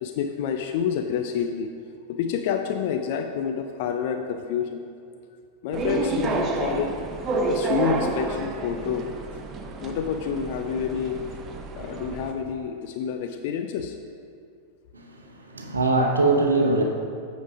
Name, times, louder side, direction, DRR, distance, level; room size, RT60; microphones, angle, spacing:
voice 1, 0.0-1.7 2.1-4.8 5.6-6.9 7.4-9.1 9.8-11.2 11.7-14.0, left 7 dB, 50° left, 6 dB, 0.4 m, -28 dB
sound 1, 5.7-12.3, right 3 dB, 30° right, 0.7 m, -29 dB
voice 2, 14.9-16.8, right 2 dB, 75° right, 2 dB, 0.8 m, -22 dB
8.8 x 5.2 x 4.9 m, 2.4 s
figure-of-eight pair, 90°, 0 cm